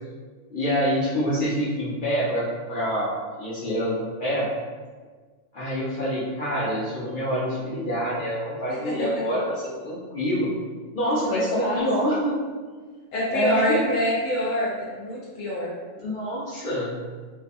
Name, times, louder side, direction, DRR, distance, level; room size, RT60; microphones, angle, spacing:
voice 1, 0.5-4.5 5.5-10.5 10.9-12.3 13.3-13.9 16.0-17.0, equal, 60° left, -8 dB, 0.5 m, -26 dB
voice 2, 11.3-11.8 13.1-15.7, left 1 dB, 80° left, -6 dB, 1.0 m, -26 dB
2.6 x 2.3 x 2.5 m, 1.5 s
omnidirectional pair, 1.3 m